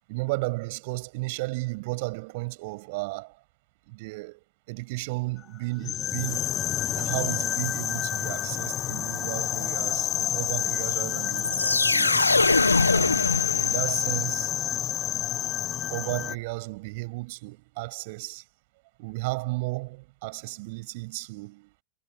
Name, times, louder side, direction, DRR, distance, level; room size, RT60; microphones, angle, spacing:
voice 1, 0.1-3.3 3.9-4.4 4.7-6.5 7.0-12.3 12.9-13.3 13.6-14.5 15.9-18.4 19.0-21.7, right 24 dB, 50° right, 6.9 m, -34 dB
sound 1, 5.8-16.4, left 10 dB, 30° left, 1.0 m, -29 dB
sound 2, 11.4-14.2, left 3 dB, 80° left, 1.5 m, -23 dB
figure-of-eight pair, 90°, 0 cm